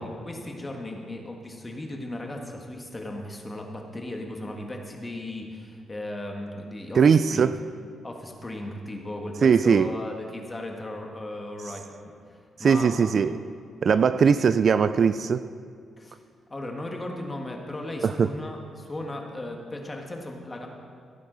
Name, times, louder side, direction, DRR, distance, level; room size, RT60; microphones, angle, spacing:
voice 1, 0.0-7.0 7.3-7.5 8.0-11.8 12.2-13.3 16.0-16.2 16.5-20.7, left 1 dB, 20° left, 2 dB, 1.6 m, -36 dB
voice 2, 6.9-7.6 9.4-9.9 12.6-13.4 13.8-15.4 18.0-18.3, right 6 dB, 50° right, 13 dB, 0.3 m, -20 dB
16.0 x 9.1 x 4.0 m, 2.2 s
cardioid pair, 105°, 0 cm